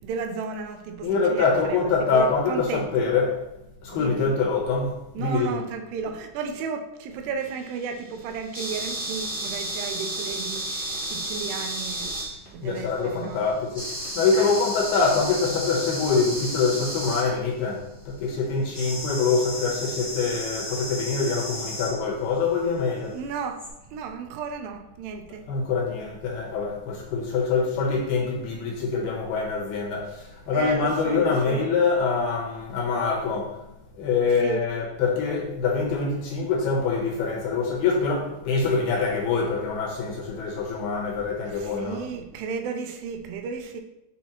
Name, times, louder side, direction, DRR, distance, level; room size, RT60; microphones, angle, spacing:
voice 1, 0.0-3.1 3.9-4.3 5.2-12.2 12.5-13.5 14.3-14.5 23.1-23.6 23.9-25.5 30.5-31.7 34.4-34.7 41.5-43.8, right 6 dB, 80° right, 6 dB, 2.6 m, -34 dB
voice 2, 1.0-3.4 3.8-5.6 12.6-23.2 25.5-33.6 33.9-42.0, left 4 dB, 75° left, -1 dB, 2.8 m, -25 dB
sound 1, 7.4-12.7 13.7-17.2 18.7-22.0 23.6-23.7, right 1 dB, 55° right, 0.3 m, -33 dB
7.1 x 5.9 x 2.9 m, 0.86 s
omnidirectional pair, 4.9 m